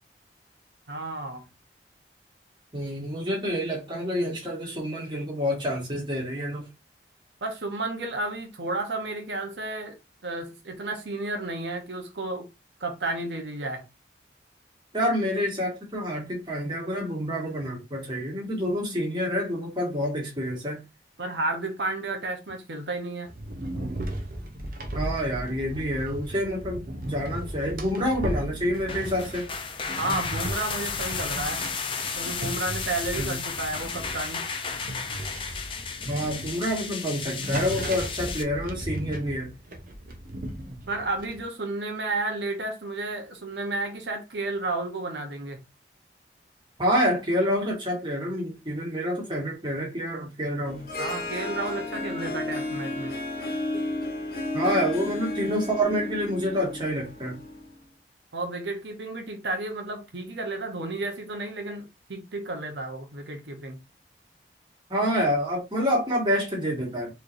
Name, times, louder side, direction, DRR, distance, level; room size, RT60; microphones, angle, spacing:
voice 1, 0.9-1.4 7.4-10.0 10.2-12.5 12.8-13.8 21.2-23.3 30.0-31.6 32.1-34.4 40.9-45.6 51.0-53.1 58.3-63.8, right 2 dB, 80° right, 0.9 m, -32 dB
voice 2, 2.7-6.6 14.9-20.8 24.9-29.5 33.2-33.5 36.1-39.5 46.8-50.8 54.5-57.4 64.9-67.1, equal, 25° right, 1.7 m, -28 dB
sound 1, 23.3-41.4, right 1 dB, 50° right, 0.8 m, -36 dB
sound 2, 28.7-38.4, left 5 dB, 30° left, 0.6 m, -33 dB
Harp, 50.6-57.7, left 2 dB, 60° left, 1.2 m, -33 dB
4.3 x 3.2 x 2.6 m
head